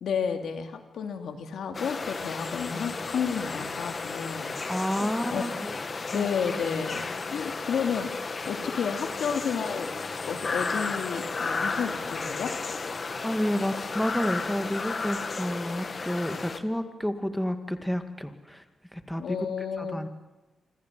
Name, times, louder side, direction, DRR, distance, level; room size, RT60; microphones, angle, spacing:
voice 1, 0.0-4.5 4.9-5.5 6.1-8.1 8.5-9.9 10.3-12.5 19.2-20.1, left 6 dB, 85° left, 6 dB, 2.6 m, -31 dB
sound 1, 1.7-16.6, left 4 dB, 45° left, 1.8 m, -33 dB
voice 2, 4.7-5.8 6.1-6.3 13.2-18.6 18.9-19.5 19.8-20.1, equal, 5° left, 8 dB, 2.0 m, -30 dB
26.5 x 25.5 x 7.6 m, 1.1 s
cardioid pair, 85°, 0 cm